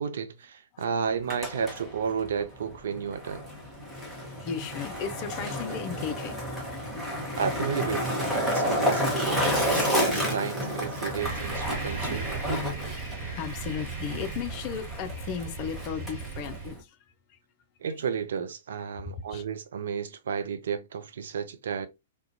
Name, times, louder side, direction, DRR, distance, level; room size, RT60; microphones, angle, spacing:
voice 1, 0.0-3.5 7.4-12.4 17.8-21.9, right 6 dB, 60° right, 0.4 m, -32 dB
Skateboard, 1.1-16.8, equal, ahead, 0.9 m, -31 dB
voice 2, 4.4-6.4 11.8-12.2 12.6-16.9 19.1-19.4, left 7 dB, 35° left, 0.4 m, -36 dB
sound 1, 11.2-16.7, right 5 dB, 30° right, 1.5 m, -37 dB
2.4 x 2.1 x 2.6 m
figure-of-eight pair, 105°, 0 cm